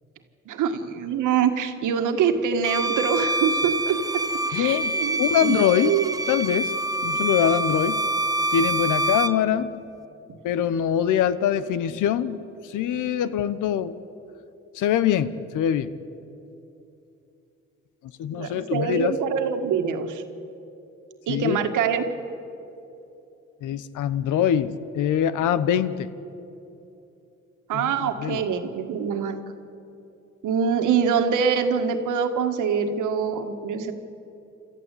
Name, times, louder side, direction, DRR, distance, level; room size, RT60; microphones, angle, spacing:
voice 1, 0.5-4.2 4.5-6.1 18.3-20.2 21.3-22.1 27.7-29.4 30.4-33.9, right 7 dB, 80° right, 6 dB, 1.8 m, -24 dB
Bowed string instrument, 2.6-9.4, right 1 dB, 10° right, 0.8 m, -26 dB
voice 2, 4.5-6.0 6.3-6.7 7.0-8.0 8.5-9.7 10.4-12.4 12.6-14.0 14.7-15.9 18.2-19.2 21.3-21.6 23.6-26.1 27.7-28.4, left 9 dB, 85° left, 15 dB, 1.0 m, -23 dB
28.0 x 13.5 x 8.4 m, 2.9 s
cardioid pair, 90°, 30 cm